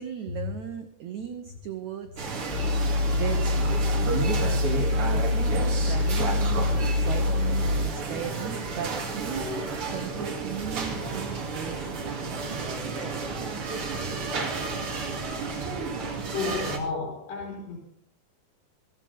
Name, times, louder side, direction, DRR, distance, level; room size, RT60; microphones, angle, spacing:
voice 1, 0.0-2.6 3.1-13.2, right 9 dB, 85° right, 6 dB, 1.6 m, -37 dB
sound 1, 2.2-16.8, right 3 dB, 40° right, 2.3 m, -32 dB
sound 2, 2.5-7.8, left 2 dB, ahead, 4.9 m, -25 dB
voice 2, 16.3-17.8, left 4 dB, 85° left, -2 dB, 5.6 m, -32 dB
17.0 x 15.5 x 4.0 m, 0.64 s
omnidirectional pair, 4.9 m